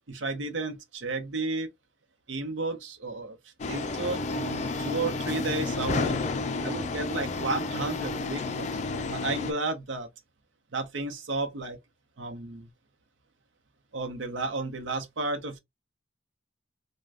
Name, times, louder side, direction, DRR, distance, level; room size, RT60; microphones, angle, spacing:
voice 1, 0.1-1.7 2.3-3.4 3.7-6.2 6.6-8.7 9.1-10.1 10.7-11.8 12.2-12.7 13.9-15.6, right 3 dB, 85° right, 0.7 m, -32 dB
sound 1, 3.6-9.5, left 3 dB, 40° left, 0.3 m, -31 dB
3.3 x 2.2 x 2.4 m
head